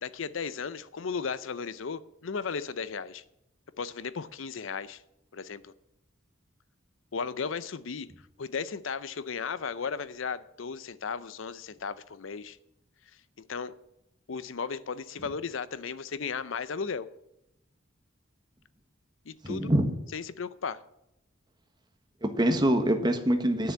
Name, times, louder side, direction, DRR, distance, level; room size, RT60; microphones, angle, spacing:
voice 1, 0.0-3.2 3.8-5.0 5.3-5.7 7.1-8.1 8.4-12.6 13.5-13.7 14.3-17.1 19.3-19.7 20.1-20.8, left 5 dB, 75° left, 16 dB, 0.6 m, -35 dB
voice 2, 19.4-20.0 22.2-23.7, right 1 dB, 20° right, 6 dB, 1.3 m, -25 dB
10.0 x 6.9 x 8.6 m, 0.84 s
head